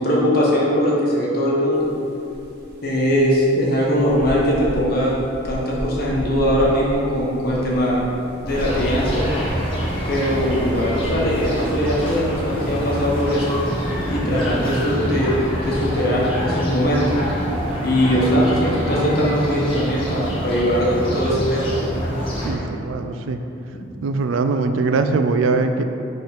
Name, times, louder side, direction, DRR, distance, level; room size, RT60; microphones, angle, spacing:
voice 1, 0.0-1.9 2.8-5.2 5.4-8.0 8.4-9.2 10.1-13.4 14.1-17.0 17.8-21.7, equal, 50° left, -5 dB, 1.3 m, -20 dB
sound 1, 1.7-1.9 2.2-12.4, equal, 55° right, 0.7 m, -34 dB
sound 2, 8.5-22.5, equal, 25° left, 1.3 m, -26 dB
voice 2, 22.4-23.4 24.0-25.8, right 3 dB, 75° right, 8 dB, 0.4 m, -21 dB
5.3 x 3.7 x 5.8 m, 2.9 s
head